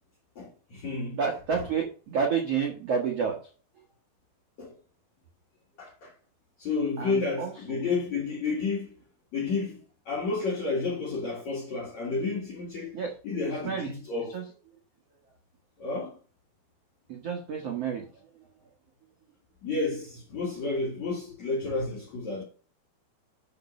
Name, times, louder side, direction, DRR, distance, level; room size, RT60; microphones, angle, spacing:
voice 1, 0.4-1.2 4.6-4.7 5.8-6.1 6.6-8.9 9.3-9.8 10.1-13.0 13.2-14.3 15.8-16.2 19.6-22.4, left 4 dB, 50° left, 2.9 m, -31 dB
voice 2, 1.1-3.4 7.0-7.8 12.9-13.2 13.5-13.9 14.2-14.5 17.1-18.1, right 6 dB, 65° right, 1.6 m, -30 dB
12.0 x 4.3 x 6.4 m
omnidirectional pair, 5.0 m